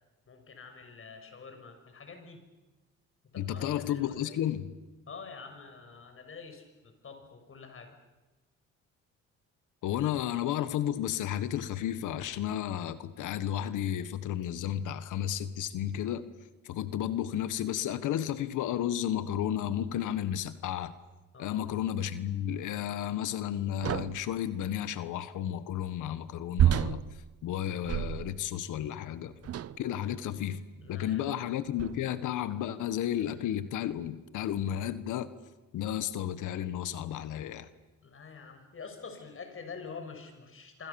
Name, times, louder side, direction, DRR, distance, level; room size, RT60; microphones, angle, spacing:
voice 1, 0.3-2.4 3.3-4.4 5.1-8.0 21.3-21.7 30.8-31.3 38.0-40.9, left 5 dB, 45° left, 6 dB, 6.7 m, -46 dB
voice 2, 3.4-4.7 9.8-16.2 16.6-20.9 21.4-27.0 27.4-29.3 29.8-30.6 30.9-35.3 35.7-37.7, left 11 dB, 85° left, 13 dB, 1.4 m, -32 dB
sound 1, 23.8-24.3 26.6-28.5 29.4-29.9 30.8-30.9 31.8-32.2, right 11 dB, 55° right, 0.8 m, -30 dB
27.0 x 25.5 x 7.1 m, 1.1 s
cardioid pair, 90°, 30 cm